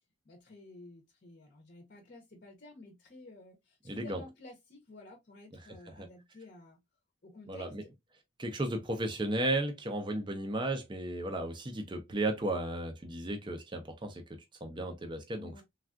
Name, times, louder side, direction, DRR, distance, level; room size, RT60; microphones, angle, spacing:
voice 1, 0.2-6.8 7.2-7.9 15.4-15.6, left 2 dB, 40° left, 0.7 m, -53 dB
voice 2, 3.9-4.2 6.0-6.1 7.5-7.8 8.4-14.2 14.6-15.5, right 1 dB, 20° right, 0.4 m, -34 dB
3.4 x 2.3 x 2.3 m
head